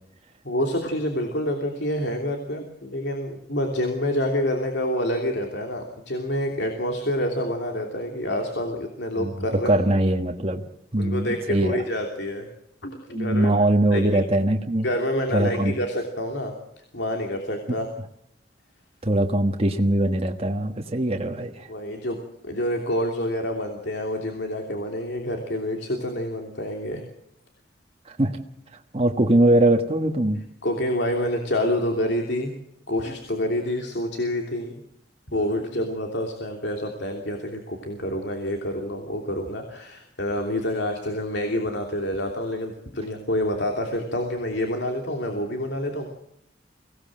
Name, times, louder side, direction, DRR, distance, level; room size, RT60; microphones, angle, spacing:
voice 1, 0.4-9.8 11.0-12.5 12.8-13.6 13.9-14.0 14.8-16.5 16.9-17.9 21.7-22.2 22.4-27.0 30.6-32.5 32.9-34.7 35.3-46.1, left 1 dB, 65° left, 3 dB, 3.0 m, -27 dB
voice 2, 9.6-10.6 10.9-11.8 13.1-14.9 15.3-15.8 19.0-21.7 28.0-28.3 28.9-30.4, right 1 dB, 35° right, 3 dB, 1.4 m, -21 dB
24.0 x 17.5 x 7.6 m, 0.76 s
head